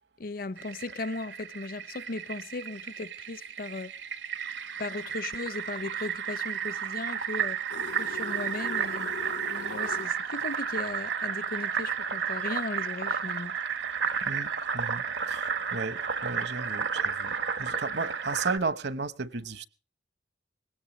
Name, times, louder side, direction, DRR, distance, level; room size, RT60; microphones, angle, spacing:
voice 1, 0.2-3.9 4.8-7.6 8.0-9.1 9.5-13.6, left 3 dB, 55° left, 0.7 m, -37 dB
Fill (with liquid), 0.6-18.6, right 7 dB, 85° right, 1.3 m, -32 dB
sound 1, 7.7-10.1, left 6 dB, 80° left, 0.9 m, -41 dB
voice 2, 14.7-19.6, right 3 dB, 70° right, 1.0 m, -34 dB
20.5 x 17.5 x 3.1 m
head